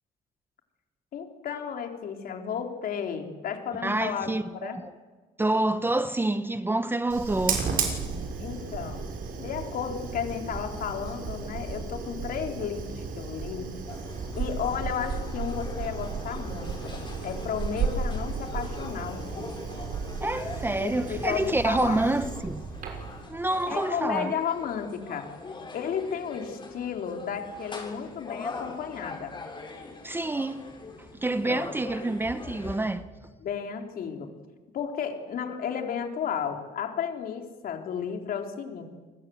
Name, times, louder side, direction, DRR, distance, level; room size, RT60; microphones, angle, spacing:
voice 1, 1.1-4.8 8.4-9.0 9.4-13.7 14.3-19.5 20.8-22.0 23.7-25.3 25.7-29.4 31.4-31.7 33.4-34.3 34.7-38.8, left 7 dB, 60° left, 3.8 m, -33 dB
voice 2, 3.8-4.8 5.4-7.6 20.2-22.7 23.3-24.3 30.0-30.6 31.2-33.1, right 2 dB, 15° right, 0.9 m, -27 dB
Fire, 7.1-23.2, right 5 dB, 55° right, 6.3 m, -34 dB
sound 1, 13.9-32.9, left 3 dB, 30° left, 7.3 m, -42 dB
28.0 x 21.0 x 7.9 m
cardioid pair, 110°, 17 cm